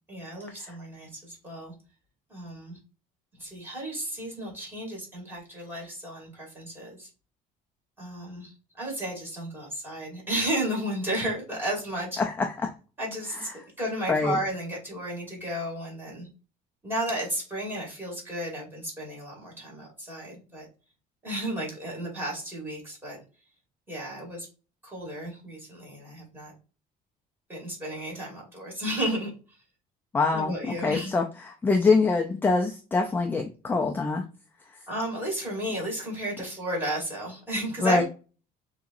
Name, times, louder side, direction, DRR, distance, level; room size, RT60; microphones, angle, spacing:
voice 1, 0.1-1.7 2.3-2.8 3.4-7.1 8.0-12.2 13.0-13.5 13.8-16.3 16.8-20.7 21.2-23.2 23.9-24.5 24.8-26.5 27.5-29.3 30.3-31.1 34.9-38.0, right 1 dB, 15° right, 2.3 m, -33 dB
voice 2, 12.2-12.7 14.1-14.4 30.1-34.3 37.8-38.0, left 4 dB, 10° left, 0.4 m, -25 dB
6.6 x 3.0 x 2.5 m
cardioid pair, 170°, 16 cm